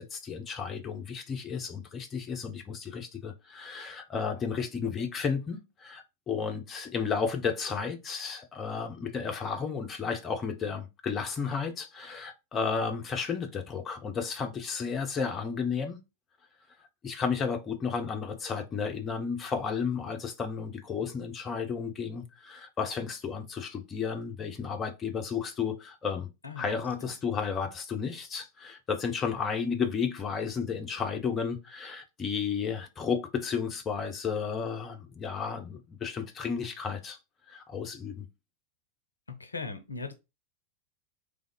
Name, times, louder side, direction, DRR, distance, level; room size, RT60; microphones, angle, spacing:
voice 1, 0.0-16.0 17.0-26.3 26.6-37.2 37.5-38.3, left 6 dB, 25° left, 0.9 m, -33 dB
voice 2, 39.3-40.1, left 4 dB, 75° left, 0.7 m, -38 dB
3.6 x 3.5 x 3.9 m
figure-of-eight pair, 90°, 0 cm